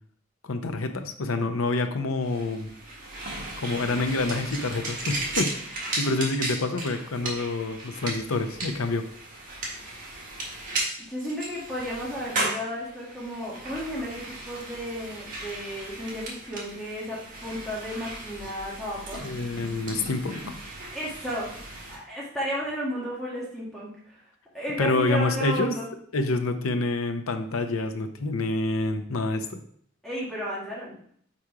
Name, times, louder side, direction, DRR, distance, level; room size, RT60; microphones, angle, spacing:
voice 1, 0.4-2.7 3.6-9.0 19.2-20.6 24.8-25.7 26.1-29.6, left 2 dB, 90° left, 8 dB, 0.7 m, -27 dB
sound 1, 2.2-22.0, right 2 dB, 40° right, 1.4 m, -36 dB
voice 2, 11.0-19.2 20.9-24.2 24.5-25.9 30.0-31.0, equal, ahead, -6 dB, 1.6 m, -33 dB
5.0 x 4.3 x 4.8 m, 0.63 s
head